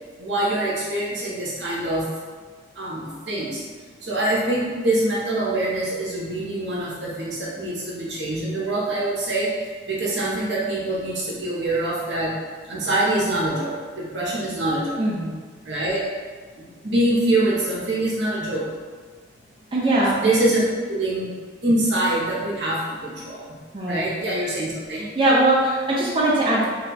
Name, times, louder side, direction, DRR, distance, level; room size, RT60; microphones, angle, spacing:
voice 1, 0.2-2.1 2.8-3.6 4.0-9.5 9.9-12.3 12.6-15.1 15.6-16.0 16.6-18.7 20.2-20.6 20.9-21.3 21.6-23.5 23.9-25.1, right 1 dB, 70° right, -5 dB, 0.9 m, -24 dB
voice 2, 15.0-15.3 19.7-20.1 23.7-24.1 24.9-26.7, right 1 dB, 30° right, -6 dB, 0.5 m, -20 dB
3.1 x 2.3 x 3.8 m, 1.5 s
head